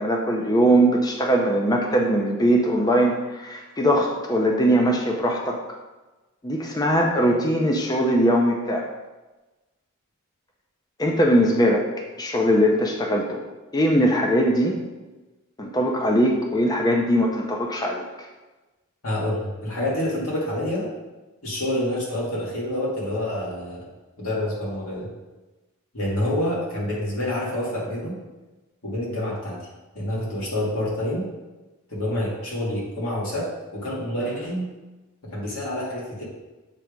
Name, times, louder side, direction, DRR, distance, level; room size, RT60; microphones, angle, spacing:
voice 1, 0.0-5.6 6.4-8.9 11.0-11.8 12.2-13.4 13.7-14.8 15.6-18.0, equal, 20° left, 0 dB, 0.6 m, -21 dB
voice 2, 19.0-20.9 21.4-23.8 24.2-25.1 25.9-28.2 28.8-29.6 29.9-31.3 31.9-34.7 35.3-36.2, left 1 dB, 85° left, -5 dB, 2.3 m, -27 dB
7.5 x 3.4 x 5.1 m, 1.1 s
head